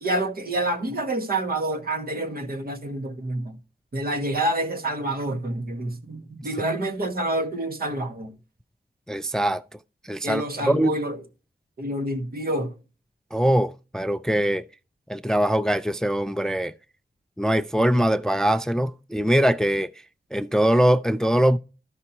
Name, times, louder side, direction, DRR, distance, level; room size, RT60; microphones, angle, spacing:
voice 1, 0.0-3.5 3.9-8.3 10.2-11.2 11.8-12.7, right 1 dB, 65° right, 1.5 m, -28 dB
voice 2, 9.1-9.6 10.1-11.0 13.3-14.6 15.1-16.7 17.4-19.9 20.3-21.6, equal, 5° left, 0.3 m, -22 dB
13.0 x 5.5 x 2.9 m
wide cardioid pair, 105°, 17 cm